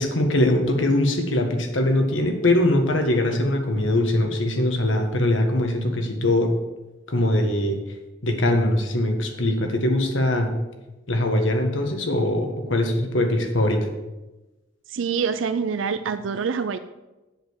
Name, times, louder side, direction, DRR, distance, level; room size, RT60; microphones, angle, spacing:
voice 1, 0.0-6.5 7.1-7.8 8.2-10.5 11.1-13.9, left 1 dB, 85° left, 4 dB, 1.5 m, -22 dB
voice 2, 14.9-16.8, right 6 dB, 90° right, 10 dB, 0.4 m, -25 dB
7.6 x 6.7 x 7.3 m, 1.1 s
head